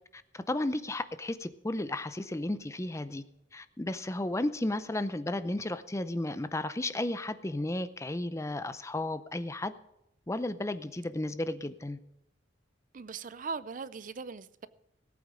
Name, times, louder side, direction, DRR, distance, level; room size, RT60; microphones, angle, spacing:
voice 1, 0.1-3.2 3.5-9.7 10.3-12.0, left 1 dB, 15° left, 0.6 m, -33 dB
voice 2, 12.9-14.7, right 5 dB, 45° right, 0.5 m, -39 dB
18.0 x 8.6 x 5.0 m
head